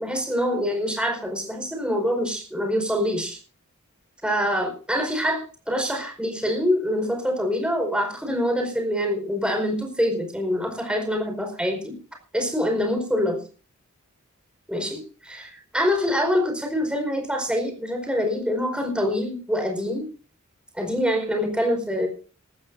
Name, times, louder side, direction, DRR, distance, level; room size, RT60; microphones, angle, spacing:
voice 1, 0.0-3.4 4.2-12.0 12.3-13.4 14.7-20.1 20.7-22.1, equal, 5° right, 3 dB, 4.9 m, -25 dB
20.0 x 14.5 x 2.7 m, 0.36 s
head